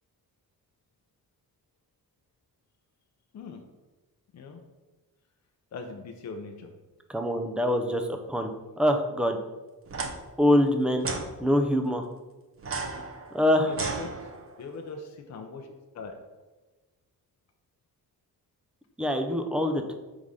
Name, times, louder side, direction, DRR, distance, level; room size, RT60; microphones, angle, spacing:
voice 1, 3.3-3.6 4.3-4.6 5.7-6.7 13.7-14.3 14.6-16.2, left 3 dB, 45° left, 3 dB, 0.6 m, -41 dB
voice 2, 7.1-8.0 8.3-8.5 8.8-9.4 10.4-11.1 11.4-12.1 13.3-13.7 19.0-19.9, left 1 dB, 5° right, 5 dB, 0.4 m, -24 dB
sound 1, 9.9-10.1 11.0-11.3 12.6-14.6, right 4 dB, 40° right, 0.7 m, -34 dB
4.8 x 3.7 x 5.4 m, 1.2 s
wide cardioid pair, 155°, 37 cm